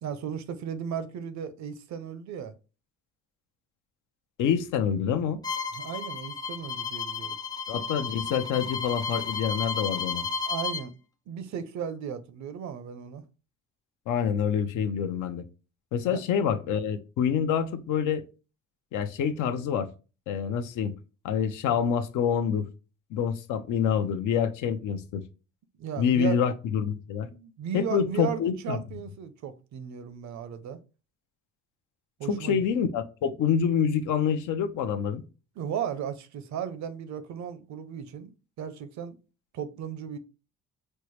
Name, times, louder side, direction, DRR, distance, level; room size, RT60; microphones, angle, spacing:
voice 1, 0.0-2.5 5.7-7.4 10.5-10.9 11.3-13.2 16.1-16.2 25.8-26.4 27.3-30.8 32.2-32.6 35.6-38.3 38.6-39.2 39.5-40.2, right 8 dB, 65° right, 0.5 m, -35 dB
voice 2, 4.4-5.4 7.7-10.3 14.1-15.4 15.9-18.2 18.9-19.9 20.3-20.9 21.2-22.7 23.1-25.2 26.0-27.3 27.7-28.8 32.3-35.2, left 7 dB, 85° left, 0.5 m, -27 dB
Bowed string instrument, 5.4-10.9, left 5 dB, 15° left, 0.4 m, -33 dB
4.4 x 2.0 x 3.1 m
cardioid pair, 90°, 30 cm